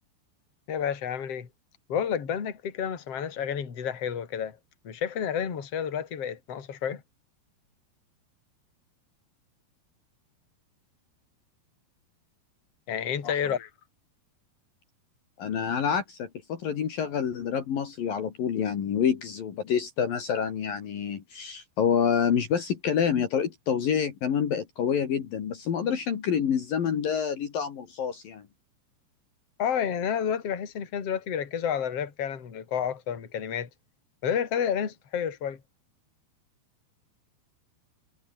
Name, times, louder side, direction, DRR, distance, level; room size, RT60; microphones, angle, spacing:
voice 1, 0.7-1.5 1.9-4.6 4.8-7.0 12.9-13.7 29.6-33.7 34.2-35.6, left 8 dB, 35° left, 3.7 m, -30 dB
voice 2, 15.4-28.4, left 7 dB, 55° left, 3.9 m, -27 dB
omnidirectional pair, 5.1 m